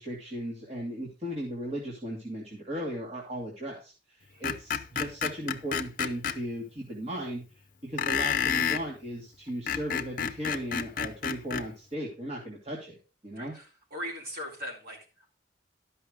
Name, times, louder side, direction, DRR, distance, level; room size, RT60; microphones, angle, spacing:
voice 1, 0.0-7.4 7.8-13.0 13.2-13.5, right 1 dB, 35° right, -2 dB, 2.0 m, -36 dB
Screech, 4.4-6.4 8.0-8.9 9.5-11.7, left 7 dB, 50° left, 0.6 m, -30 dB
voice 2, 13.4-15.3, equal, 55° right, -1 dB, 3.7 m, -40 dB
12.5 x 5.5 x 5.0 m, 0.33 s
head